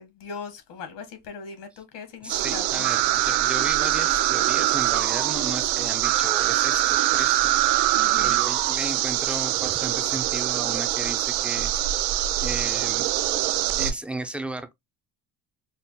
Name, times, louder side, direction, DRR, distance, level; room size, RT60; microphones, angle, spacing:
voice 1, 0.0-2.7 7.9-8.4, left 6 dB, 70° left, 1.3 m, -39 dB
voice 2, 2.2-7.5 8.2-11.7 12.4-13.2 13.8-14.7, right 2 dB, 5° right, 0.3 m, -35 dB
sound 1, 2.3-13.9, right 14 dB, 85° right, 0.6 m, -23 dB
5.2 x 2.0 x 2.8 m
cardioid pair, 120°, 44 cm